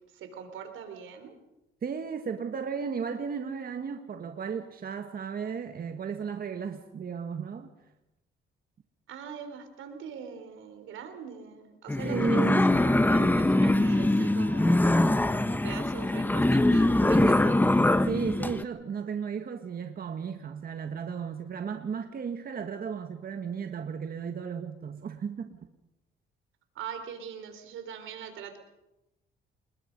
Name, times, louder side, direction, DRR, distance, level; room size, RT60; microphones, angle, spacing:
voice 1, 0.1-1.3 9.1-15.1 15.5-17.7 26.7-28.6, right 7 dB, 85° right, 4.0 m, -42 dB
voice 2, 1.8-7.7 12.0-12.7 18.0-25.6, right 6 dB, 50° right, 1.7 m, -34 dB
sound 1, 11.9-18.6, left 1 dB, 10° left, 1.0 m, -23 dB
28.0 x 21.0 x 5.4 m
cardioid pair, 90°, 20 cm